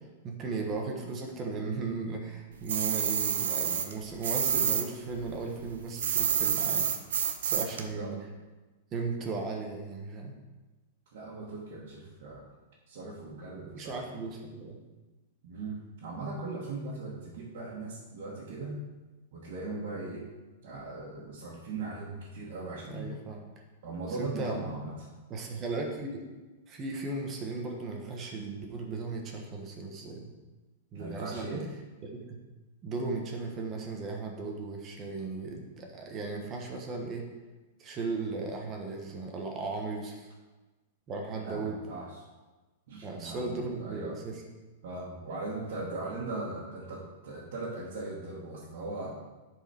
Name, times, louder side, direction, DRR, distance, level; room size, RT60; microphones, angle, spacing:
voice 1, 0.2-6.9 7.4-8.2 8.9-10.3 13.7-14.8 22.9-23.4 24.2-24.7 25.3-26.2 26.7-30.3 30.9-31.6 32.0-32.4 32.8-37.3 37.8-40.3 41.1-41.8 43.0-44.4, right 3 dB, 25° right, 1 dB, 1.4 m, -36 dB
sound 1, 2.7-4.9 5.1-7.8, right 8 dB, 85° right, 0.8 m, -28 dB
voice 2, 11.1-12.5 12.9-14.0 15.4-18.8 19.3-20.2 20.6-23.1 23.8-25.1 30.9-31.7 41.4-42.2 42.9-44.2 44.8-49.1, right 3 dB, 65° right, -7 dB, 2.0 m, -39 dB
10.0 x 4.8 x 4.5 m, 1.2 s
supercardioid pair, 145°, 0 cm